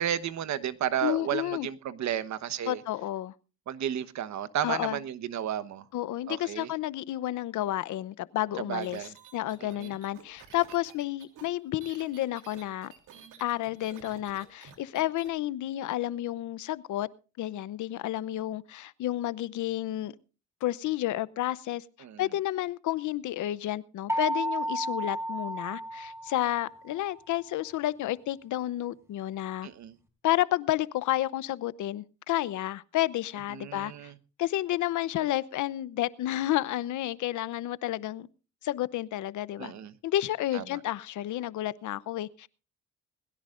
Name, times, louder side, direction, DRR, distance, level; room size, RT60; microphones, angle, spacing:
voice 1, 0.0-2.8 3.7-5.8 6.3-6.7 8.7-9.1 9.6-9.9 22.0-22.2 29.6-30.0 33.5-34.1 39.6-39.9 40.5-40.6, right 10 dB, 65° right, 1.2 m, -32 dB
voice 2, 1.0-1.7 2.6-3.3 4.6-5.0 5.9-12.9 13.4-17.1 17.4-20.1 20.6-21.8 22.2-29.7 30.2-34.1 34.4-38.3 38.6-39.7 40.0-42.5, left 14 dB, 80° left, 0.8 m, -31 dB
sound 1, 8.8-15.3, right 8 dB, 85° right, 3.1 m, -51 dB
sound 2, 24.1-26.9, right 1 dB, 10° right, 4.4 m, -32 dB
21.5 x 16.0 x 2.5 m
cardioid pair, 90°, 30 cm